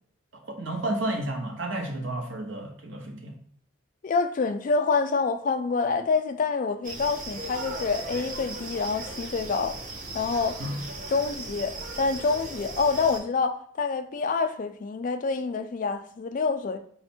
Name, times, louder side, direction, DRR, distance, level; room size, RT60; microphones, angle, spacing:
voice 1, 0.5-3.4 10.6-10.8, right 1 dB, 75° right, 0.9 m, -31 dB
voice 2, 4.0-9.7 10.1-10.5 11.1-16.8, left 4 dB, 40° left, 0.3 m, -27 dB
sound 1, 6.8-13.2, right 2 dB, 40° right, 0.7 m, -37 dB
4.1 x 2.1 x 4.3 m
head